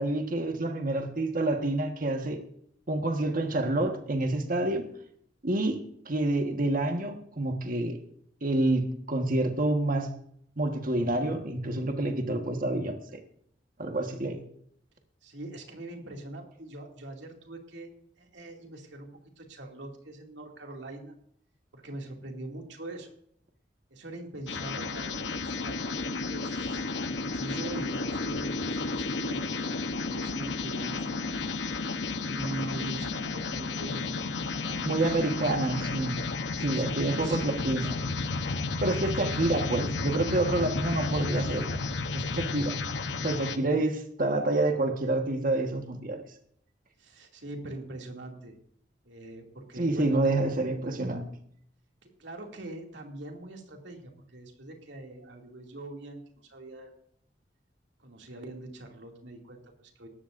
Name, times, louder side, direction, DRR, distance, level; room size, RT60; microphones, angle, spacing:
voice 1, 0.0-2.4 2.9-4.8 5.4-5.8 6.0-8.0 8.4-10.1 10.6-13.2 13.8-14.4 34.8-36.2 36.6-38.0 38.8-41.8 42.1-42.8 43.2-46.2 49.8-51.2, right 2 dB, 50° right, 5 dB, 1.5 m, -28 dB
voice 2, 15.2-17.9 18.2-21.1 21.7-23.1 23.9-25.3 25.6-26.9 27.2-29.5 30.0-31.4 32.3-35.1 36.7-37.8 47.0-48.5 49.0-50.4 52.0-56.9 58.0-60.1, right 2 dB, 85° right, 1 dB, 2.6 m, -42 dB
sound 1, 24.5-43.6, left 3 dB, 85° left, 1.0 m, -32 dB
18.5 x 13.5 x 2.6 m, 0.66 s
head